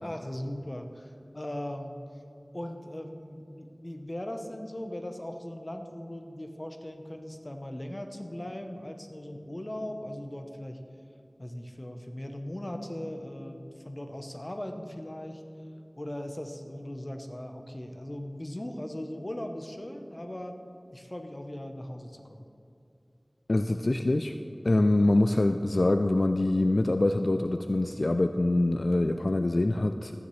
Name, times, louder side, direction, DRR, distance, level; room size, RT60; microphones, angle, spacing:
voice 1, 0.0-0.9 1.3-2.0 2.5-10.8 11.4-15.4 16.0-20.6 20.9-22.5, left 1 dB, 35° left, 5 dB, 0.9 m, -38 dB
voice 2, 23.5-24.4 24.6-30.1, left 2 dB, 70° left, 7 dB, 0.3 m, -24 dB
14.5 x 9.5 x 3.2 m, 2.7 s
wide cardioid pair, 45°, 0 cm